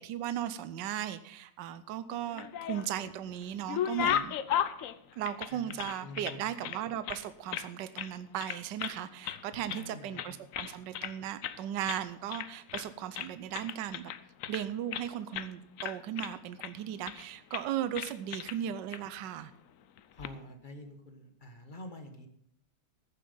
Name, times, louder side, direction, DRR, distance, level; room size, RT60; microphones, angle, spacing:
voice 1, 0.0-4.3 5.2-14.1 14.5-19.5, right 10 dB, 80° right, 13 dB, 1.3 m, -37 dB
sound 1, 2.2-3.1 3.4-6.4 6.6-7.7 8.0-8.1 8.4-9.0 9.2-9.9 10.2-11.2 11.4-11.6 11.9-12.0 12.3-12.9 13.2-15.1 15.3-15.5 15.8-16.7 17.1-17.3 17.5-17.7 18.0-18.6 18.9-19.0 20.0-20.3, left 10 dB, 70° left, 0.8 m, -35 dB
voice 2, 5.5-6.7 9.5-10.4 18.5-18.8 20.1-22.3, left 1 dB, 30° left, 6 dB, 1.3 m, -48 dB
14.5 x 7.5 x 5.4 m, 0.71 s
omnidirectional pair, 1.9 m